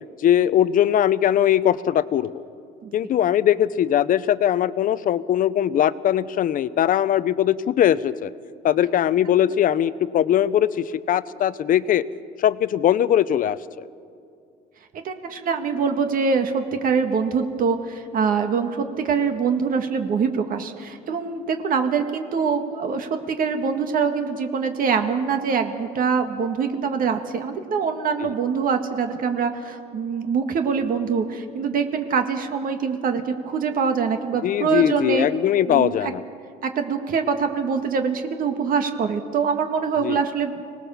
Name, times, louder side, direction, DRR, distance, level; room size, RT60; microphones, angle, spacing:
voice 1, 0.2-2.3 2.9-8.3 8.6-12.0 12.4-13.6 28.2-28.3 34.4-36.2 40.0-40.2, left 10 dB, 55° left, 16 dB, 0.7 m, -20 dB
voice 2, 14.9-35.3 35.7-36.1 36.6-40.5, right 6 dB, 55° right, 6 dB, 1.8 m, -24 dB
25.0 x 19.0 x 7.1 m, 2.4 s
cardioid pair, 110°, 17 cm